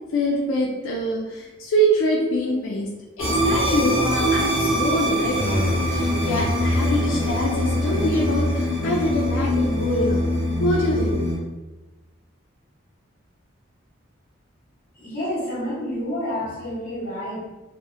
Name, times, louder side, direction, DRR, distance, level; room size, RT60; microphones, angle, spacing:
voice 1, 0.1-2.9 3.2-10.2 10.6-11.2, equal, 90° left, -2 dB, 0.4 m, -24 dB
sound 1, 3.2-11.4, equal, 20° right, 0.9 m, -23 dB
voice 2, 14.9-17.4, equal, 45° left, -7 dB, 0.9 m, -29 dB
2.6 x 2.0 x 2.5 m, 1.1 s
head